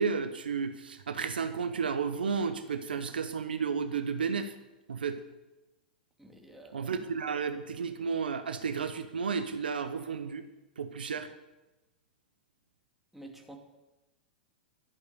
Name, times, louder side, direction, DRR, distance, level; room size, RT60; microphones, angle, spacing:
voice 1, 0.0-4.5 4.9-5.2 6.7-10.4 10.8-11.3, right 5 dB, 75° right, 9 dB, 0.8 m, -32 dB
voice 2, 6.2-6.9 13.1-13.6, right 1 dB, 5° right, 1 dB, 2.2 m, -49 dB
12.0 x 8.2 x 6.6 m, 1.0 s
figure-of-eight pair, 95°, 5 cm